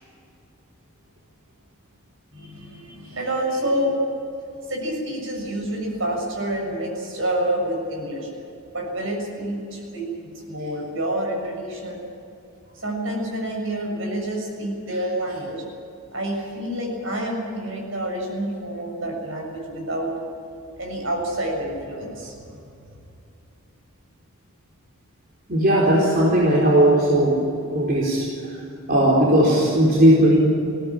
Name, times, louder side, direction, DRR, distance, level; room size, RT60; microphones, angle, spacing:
voice 1, 2.3-4.1 4.7-8.3 8.7-12.0 12.7-15.7 16.1-20.1 20.8-22.6, right 1 dB, 65° right, 1 dB, 7.1 m, -28 dB
voice 2, 25.5-28.3 28.9-30.4, right 1 dB, 45° right, -5 dB, 4.5 m, -17 dB
21.5 x 17.0 x 8.8 m, 2.6 s
head